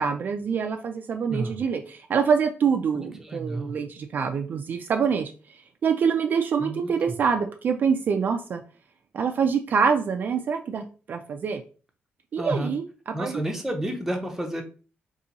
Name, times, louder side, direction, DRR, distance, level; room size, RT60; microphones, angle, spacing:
voice 1, 0.0-5.3 5.8-8.6 9.1-11.6 12.3-13.4, right 6 dB, 50° right, 5 dB, 0.3 m, -25 dB
voice 2, 2.9-3.7 6.6-7.2 12.4-12.7 13.1-14.6, right 1 dB, 10° right, 3 dB, 0.6 m, -31 dB
2.8 x 2.6 x 3.8 m, 0.36 s
wide cardioid pair, 155°, 4 cm